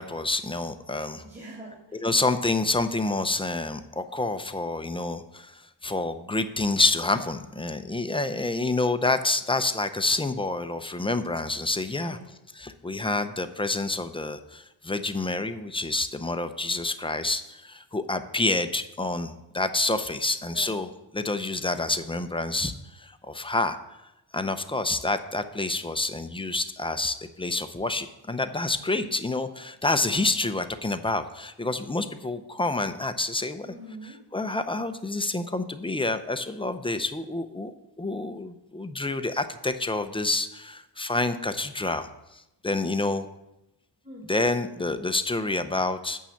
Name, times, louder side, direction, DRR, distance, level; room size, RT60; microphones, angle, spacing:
voice 1, 0.0-1.2 1.9-12.2 12.5-23.8 24.3-33.7 34.0-43.3 44.3-46.2, left 2 dB, 10° left, 9 dB, 0.6 m, -28 dB
voice 2, 1.2-2.0 11.9-12.3 20.5-20.8 33.6-34.2 44.0-44.3, right 1 dB, 25° right, -4 dB, 2.7 m, -43 dB
9.0 x 5.6 x 7.1 m, 0.91 s
cardioid pair, 100°, 44 cm